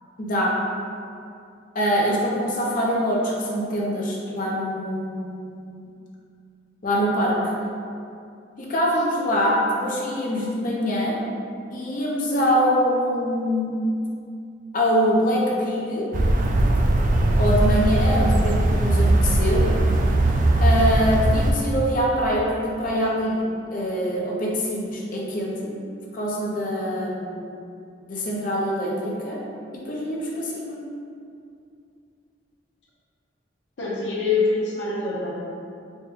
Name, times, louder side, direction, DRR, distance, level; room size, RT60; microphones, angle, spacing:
voice 1, 0.2-0.5 1.7-5.7 6.8-7.5 8.6-11.2 11.7-13.9 14.7-16.1 17.4-19.7 20.6-23.4 23.7-25.7 26.1-27.5 28.1-29.4 29.8-30.8, equal, 50° left, -4 dB, 0.7 m, -24 dB
sound 1, 16.1-21.5, right 1 dB, 45° right, 0.3 m, -19 dB
voice 2, 33.8-35.3, left 4 dB, 85° left, -7 dB, 0.8 m, -24 dB
4.2 x 2.2 x 3.6 m, 2.5 s
head